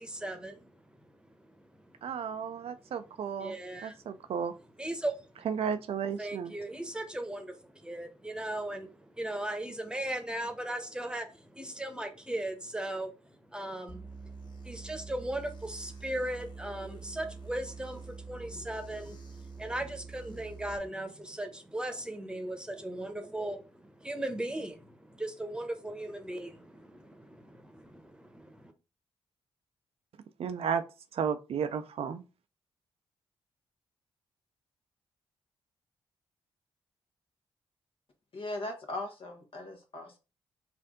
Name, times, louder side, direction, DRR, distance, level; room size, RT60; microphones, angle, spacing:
voice 1, 0.0-3.1 3.4-4.2 4.8-5.5 6.2-28.7, right 1 dB, 10° right, 1.0 m, -38 dB
voice 2, 2.0-3.5 3.8-4.5 5.5-6.5 30.4-30.8 31.1-32.2, right 7 dB, 65° right, 0.5 m, -33 dB
sound 1, 13.9-20.8, right 4 dB, 45° left, 1.5 m, -46 dB
voice 3, 38.3-40.2, left 2 dB, 60° left, 1.3 m, -39 dB
4.4 x 2.6 x 3.7 m
supercardioid pair, 50°, 11 cm